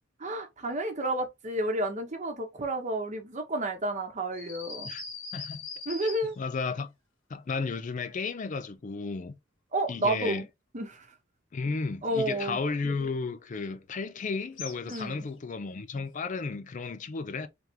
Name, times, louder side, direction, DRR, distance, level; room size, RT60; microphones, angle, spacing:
voice 1, 0.2-4.9 5.9-6.4 9.7-10.4 10.7-11.1 12.0-12.6 14.8-15.2, right 1 dB, 40° right, 0.9 m, -31 dB
sound 1, 4.3-6.6 14.6-15.3, left 5 dB, 85° left, 1.4 m, -41 dB
voice 2, 6.4-6.9 7.3-9.4 9.9-10.5 11.5-17.5, left 4 dB, 40° left, 0.4 m, -33 dB
3.5 x 3.4 x 2.8 m
head